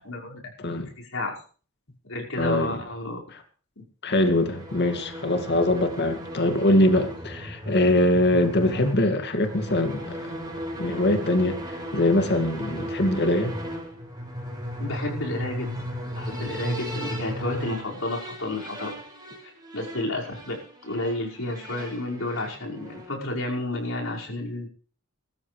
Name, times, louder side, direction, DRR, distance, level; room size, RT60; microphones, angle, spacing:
voice 1, 0.0-1.3 2.1-3.2 3.8-3.9 14.8-15.7 16.1-18.9 19.7-20.5 20.8-24.7, left 2 dB, 70° left, -2 dB, 5.6 m, -31 dB
voice 2, 0.6-0.9 2.4-2.8 3.3-3.4 4.0-10.3 10.8-13.6, left 1 dB, 55° left, 6 dB, 2.3 m, -23 dB
sound 1, 4.2-23.2, equal, 20° right, 4.8 m, -36 dB
23.0 x 14.0 x 3.4 m, 0.41 s
head